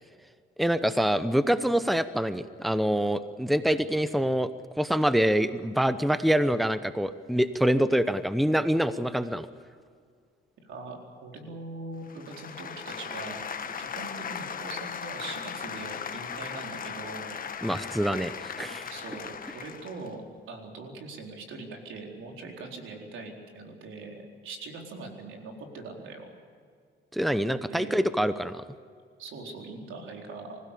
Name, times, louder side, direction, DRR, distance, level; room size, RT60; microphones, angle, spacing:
voice 1, 0.6-4.5 4.8-9.5 17.6-18.7 27.1-28.6, equal, ahead, 12 dB, 0.9 m, -25 dB
voice 2, 10.6-13.4 13.8-17.3 18.5-26.3 27.7-28.0 29.2-30.6, right 3 dB, 80° right, 2 dB, 4.2 m, -42 dB
sound 1, 12.1-20.1, left 7 dB, 45° left, 1.3 m, -38 dB
25.5 x 16.0 x 8.5 m, 2.1 s
cardioid pair, 90°, 20 cm